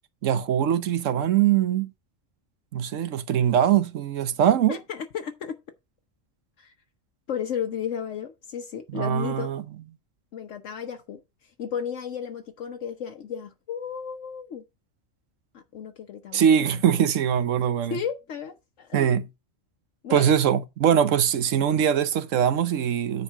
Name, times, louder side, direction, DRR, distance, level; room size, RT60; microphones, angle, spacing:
voice 1, 0.2-1.9 2.7-4.8 8.9-9.6 16.3-18.0 18.9-19.2 20.1-23.2, right 9 dB, 75° right, 1.2 m, -22 dB
voice 2, 4.7-5.6 6.6-6.7 7.3-9.5 10.3-14.6 15.5-16.4 16.7-17.1 17.9-19.2 20.0-20.3, left 8 dB, 70° left, 1.2 m, -34 dB
10.0 x 4.7 x 4.6 m
omnidirectional pair, 1.3 m